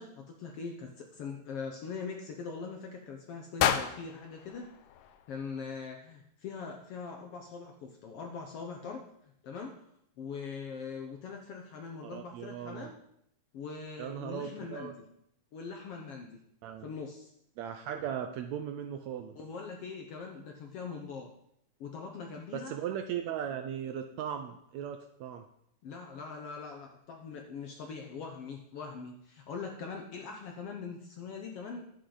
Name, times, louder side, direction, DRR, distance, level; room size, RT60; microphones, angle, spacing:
voice 1, 0.0-4.7 5.3-9.0 9.4-9.8 10.2-12.9 13.5-14.9 15.5-16.4 16.8-17.3 19.3-21.3 21.8-22.7 25.8-31.9, left 5 dB, 65° left, 2 dB, 1.5 m, -42 dB
sound 1, 3.6-5.7, left 9 dB, 85° left, 2.3 m, -32 dB
voice 2, 12.0-12.9 14.0-14.9 16.6-16.9 17.6-19.4 22.5-25.4, right 9 dB, 80° right, 7 dB, 1.7 m, -38 dB
11.5 x 8.7 x 3.9 m, 0.75 s
omnidirectional pair, 3.6 m